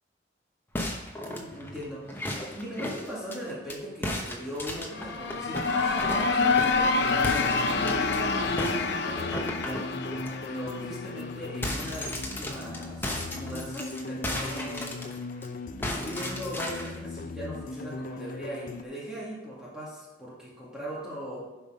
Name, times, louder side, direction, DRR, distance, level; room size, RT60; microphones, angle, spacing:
sound 1, 0.7-3.8 4.0-6.8 7.2-8.2 8.6-10.3 10.7-10.9 11.2-15.5 15.8-17.0, left 1 dB, 10° left, 0.9 m, -35 dB
voice 1, 1.2-9.9 10.4-14.9 15.8-21.4, equal, 5° right, -8 dB, 2.2 m, -39 dB
sound 2, 4.8-11.6, left 4 dB, 75° left, 0.9 m, -27 dB
sound 3, 7.0-18.8, left 3 dB, 45° left, 0.5 m, -39 dB
11.0 x 5.6 x 5.2 m, 1.1 s
head